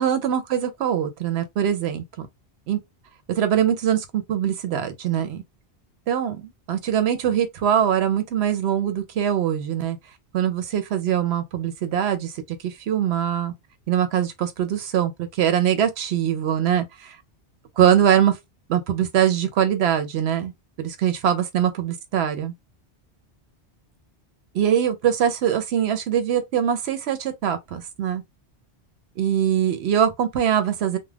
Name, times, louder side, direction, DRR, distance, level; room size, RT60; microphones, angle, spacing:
voice 1, 0.0-2.3 2.7-2.8 3.3-5.4 6.1-10.0 10.3-12.3 12.6-13.5 13.9-17.2 17.8-18.4 18.7-20.5 20.8-22.5 24.5-28.2 29.2-31.0, right 9 dB, 75° right, 0.8 m, -22 dB
2.3 x 2.2 x 3.3 m
omnidirectional pair, 1.1 m